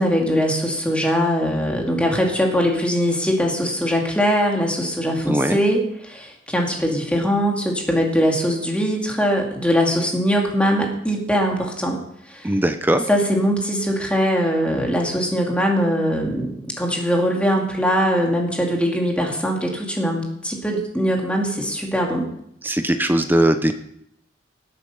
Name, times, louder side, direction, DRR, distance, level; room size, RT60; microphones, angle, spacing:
voice 1, 0.0-12.0 12.3-12.5 13.1-22.3, equal, 5° left, 0 dB, 2.5 m, -21 dB
voice 2, 5.2-5.6 12.4-13.1 22.6-23.7, right 1 dB, 10° right, 8 dB, 0.8 m, -19 dB
18.5 x 8.5 x 5.6 m, 0.72 s
head